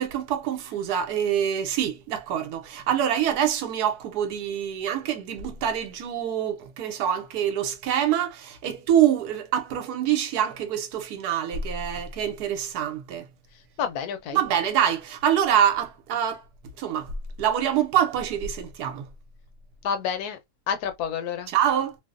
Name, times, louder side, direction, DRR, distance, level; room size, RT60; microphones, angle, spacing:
voice 1, 0.0-13.3 14.3-16.4 16.8-17.1 17.4-19.1 21.5-22.0, right 9 dB, 75° right, 1.1 m, -25 dB
voice 2, 13.8-14.4 19.8-20.4 20.7-21.5, left 7 dB, 75° left, 1.1 m, -29 dB
2.9 x 2.0 x 2.3 m
omnidirectional pair, 1.8 m